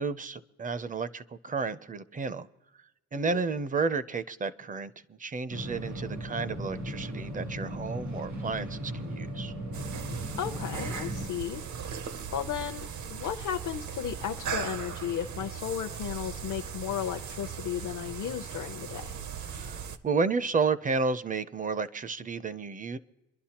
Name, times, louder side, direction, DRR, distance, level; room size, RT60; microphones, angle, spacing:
voice 1, 0.0-2.5 3.1-9.5 19.5-23.0, right 4 dB, 25° right, 14 dB, 0.5 m, -32 dB
sound 1, 5.5-11.3, right 1 dB, 85° right, 3.7 m, -37 dB
sound 2, 9.7-20.0, right 7 dB, 70° right, 0.8 m, -38 dB
voice 2, 10.4-11.6 12.3-19.1, left 10 dB, 65° left, 3 dB, 0.6 m, -34 dB
27.0 x 11.5 x 2.9 m, 1.0 s
wide cardioid pair, 150°, 31 cm